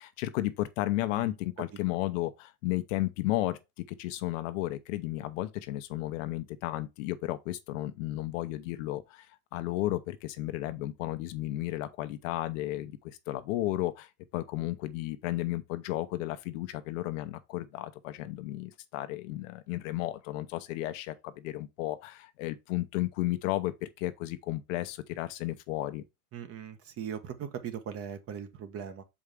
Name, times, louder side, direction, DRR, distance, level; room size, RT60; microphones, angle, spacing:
voice 1, 0.0-3.6 3.9-9.3 9.5-26.0, left 16 dB, 55° left, 0.9 m, -33 dB
voice 2, 26.3-29.0, right 8 dB, 30° right, 1.2 m, -39 dB
6.4 x 4.8 x 3.5 m
supercardioid pair, 135°, 45 cm